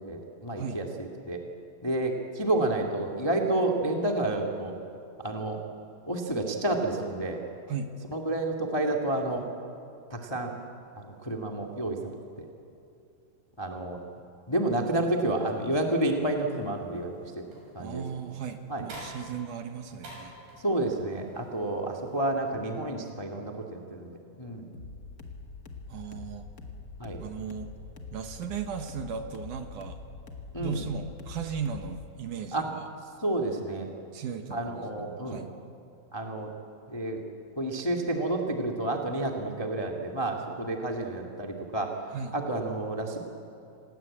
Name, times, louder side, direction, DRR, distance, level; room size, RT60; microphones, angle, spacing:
voice 1, 0.0-1.4 1.8-4.7 5.2-5.6 6.1-7.4 8.1-9.5 10.1-10.5 11.0-12.0 12.4-12.5 13.6-14.0 14.5-17.4 17.7-18.0 18.7-18.8 20.6-24.7 27.0-27.2 30.5-30.8 32.5-32.7 33.2-33.9 34.5-35.4 36.1-36.5 36.9-37.2 37.6-41.9 42.3-43.2, right 1 dB, 25° left, 1 dB, 0.6 m, -30 dB
sound 1, 15.3-22.3, right 1 dB, 90° right, 8.3 m, -51 dB
voice 2, 17.8-20.3 25.9-26.5 27.2-27.7 28.1-30.0 30.6-32.9 34.1-34.8 35.1-35.5 42.1-42.4, right 6 dB, 65° right, 6 dB, 2.4 m, -36 dB
sound 2, 24.7-32.1, left 4 dB, 45° left, 1.2 m, -44 dB
27.5 x 19.5 x 8.7 m, 2.6 s
omnidirectional pair, 4.4 m